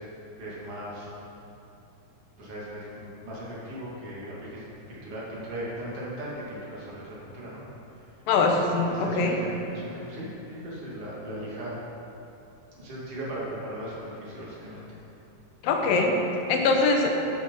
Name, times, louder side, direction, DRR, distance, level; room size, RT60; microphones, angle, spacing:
voice 1, 0.4-1.1 2.4-7.6 8.0-8.2 8.9-11.8 12.8-14.9, right 1 dB, 45° right, -7 dB, 3.1 m, -38 dB
voice 2, 8.3-9.4 15.6-17.1, left 3 dB, 80° left, 2 dB, 2.7 m, -23 dB
11.0 x 6.9 x 5.4 m, 2.9 s
omnidirectional pair, 4.0 m